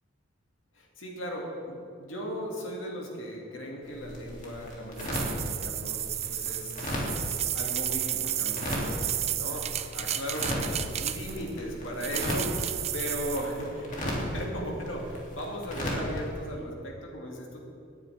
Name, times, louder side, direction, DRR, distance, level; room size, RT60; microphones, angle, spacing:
voice 1, 0.7-9.0 9.4-9.7 9.9-12.5 12.9-17.6, equal, 70° left, -1 dB, 2.2 m, -37 dB
sound 1, 3.8-16.5, equal, 40° left, 2.6 m, -36 dB
sound 2, 5.0-11.5 12.0-13.5, right 11 dB, 35° right, 0.4 m, -32 dB
18.0 x 9.5 x 3.4 m, 2.5 s
head